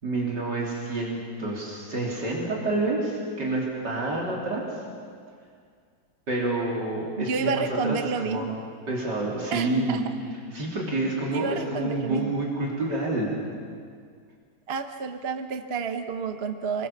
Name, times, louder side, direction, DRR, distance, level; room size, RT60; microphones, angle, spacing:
voice 1, 0.0-4.8 6.3-8.5 8.9-10.1 10.5-13.3, right 2 dB, 75° right, -3 dB, 4.0 m, -28 dB
voice 2, 7.2-8.6 9.5-10.0 11.3-12.4 14.7-16.9, right 5 dB, 40° right, 7 dB, 1.1 m, -30 dB
28.5 x 21.5 x 7.2 m, 2.2 s
omnidirectional pair, 1.9 m